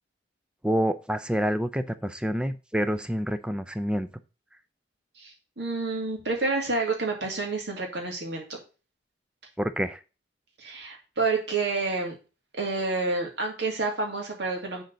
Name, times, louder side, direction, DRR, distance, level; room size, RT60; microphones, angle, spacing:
voice 1, 0.6-4.1 9.6-10.0, equal, 5° right, 11 dB, 0.5 m, -27 dB
voice 2, 5.2-8.4 10.6-12.1 12.6-14.8, right 3 dB, 65° right, 1 dB, 2.6 m, -29 dB
6.5 x 4.4 x 6.6 m, 0.33 s
head